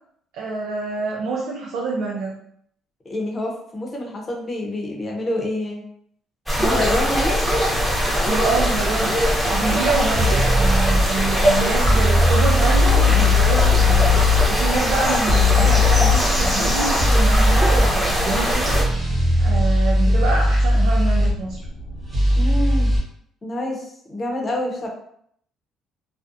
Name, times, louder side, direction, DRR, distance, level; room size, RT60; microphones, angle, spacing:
voice 1, 0.3-2.4 8.3-9.2 9.5-14.2 14.5-18.8 19.4-21.6, right 3 dB, 85° right, -3 dB, 0.5 m, -26 dB
voice 2, 3.0-5.8 6.6-7.4 22.4-22.9 23.4-24.9, left 1 dB, 30° left, 0 dB, 0.7 m, -27 dB
sound 1, 6.5-18.8, equal, 5° right, 0.8 m, -21 dB
sound 2, 10.1-11.0 11.8-14.5 15.3-16.2 17.0-17.9 18.7-21.3 22.1-23.0, left 2 dB, 30° right, 1.0 m, -18 dB
sound 3, 15.2-22.5, right 1 dB, 75° left, 0.7 m, -36 dB
2.4 x 2.1 x 2.6 m, 0.67 s
cardioid pair, 100°, 0 cm